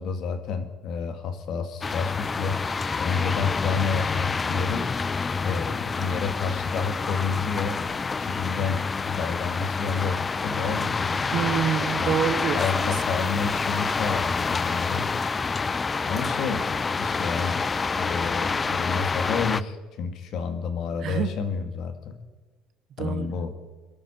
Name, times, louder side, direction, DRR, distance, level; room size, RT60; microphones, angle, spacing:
voice 1, 0.0-2.6 3.0-4.9 5.4-7.8 8.2-11.3 12.0-12.2 12.5-15.1 16.1-16.7 17.0-17.6 18.0-22.2 23.0-23.5, left 5 dB, 60° left, 7 dB, 2.1 m, -30 dB
sound 1, 1.8-19.6, left 4 dB, 25° left, 0.4 m, -27 dB
voice 2, 11.3-12.9 21.0-21.4 23.0-23.3, right 9 dB, 55° right, 11 dB, 1.0 m, -27 dB
22.5 x 12.5 x 4.4 m, 1.3 s
cardioid pair, 115°, 0 cm